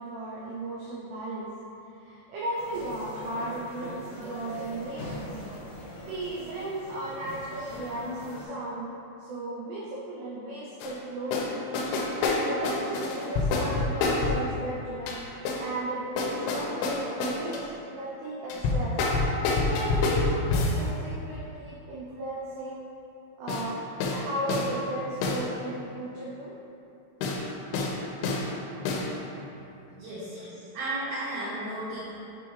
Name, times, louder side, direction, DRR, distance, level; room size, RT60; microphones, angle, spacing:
voice 1, 0.0-1.5 1.9-5.4 5.8-8.9 9.2-11.7 12.3-15.2 15.6-19.0 19.6-22.8 23.4-23.8 24.1-26.5 30.4-30.7 31.1-31.2 31.4-31.5, right 1 dB, 90° right, -6 dB, 2.3 m, -36 dB
sound 1, 2.6-8.5, left 1 dB, 65° left, 2.0 m, -41 dB
sound 2, 10.8-10.9 11.3-11.5 11.7-14.4 15.1-15.6 16.2-17.6 18.5-20.8 23.5-23.7 24.0-24.2 24.5-24.7 25.2-25.4 27.2-27.4 27.7-28.0 28.2-28.5 28.9-29.1, left 3 dB, 85° left, 3.2 m, -27 dB
voice 2, 30.0-30.4 30.7-32.0, right 1 dB, 70° right, -14 dB, 2.2 m, -33 dB
8.8 x 3.5 x 3.1 m, 2.9 s
omnidirectional pair, 5.7 m